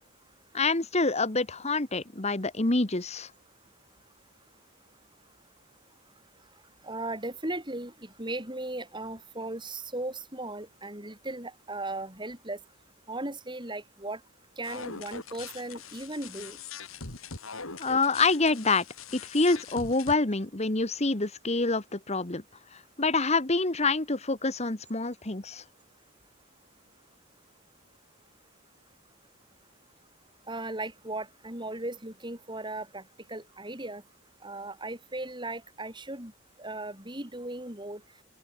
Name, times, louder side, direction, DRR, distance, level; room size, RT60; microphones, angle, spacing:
voice 1, 0.5-3.3 17.8-18.8 19.1-22.4 23.0-25.6, left 3 dB, 30° left, 1.5 m, -26 dB
voice 2, 6.8-12.6 13.1-14.2 14.6-16.6 30.5-33.0 33.3-34.0 34.4-36.3 36.6-38.0, right 2 dB, 20° right, 7.5 m, -37 dB
sound 1, 14.6-20.1, left 5 dB, 75° left, 5.6 m, -42 dB
open air
head